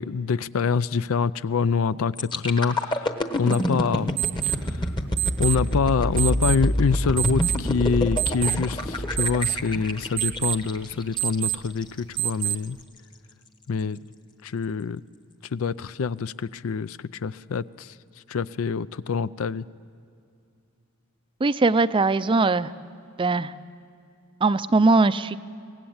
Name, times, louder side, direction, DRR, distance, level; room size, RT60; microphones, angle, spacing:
voice 1, 0.0-4.2 4.4-4.9 5.4-12.8 13.7-14.0 14.4-15.0 15.5-17.9 18.3-19.6, left 5 dB, 65° left, 17 dB, 0.5 m, -26 dB
sound 1, 2.2-12.0 12.5-12.7, left 1 dB, 20° left, 1.1 m, -27 dB
sound 2, 3.5-12.8, right 16 dB, 80° right, 0.7 m, -31 dB
voice 2, 21.4-22.7 23.2-23.5 24.4-25.4, right 3 dB, 25° right, 14 dB, 0.4 m, -20 dB
23.5 x 18.5 x 8.7 m, 2.5 s
head